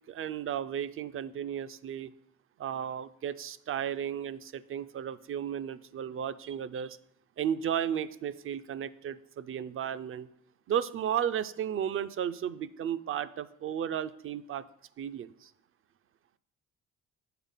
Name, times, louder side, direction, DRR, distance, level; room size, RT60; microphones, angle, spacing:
voice 1, 0.1-2.1 2.6-7.0 7.4-10.3 10.7-14.6 15.0-15.5, right 9 dB, 45° right, 15 dB, 0.4 m, -34 dB
7.9 x 3.7 x 5.6 m, 0.71 s
cardioid pair, 90°, 30 cm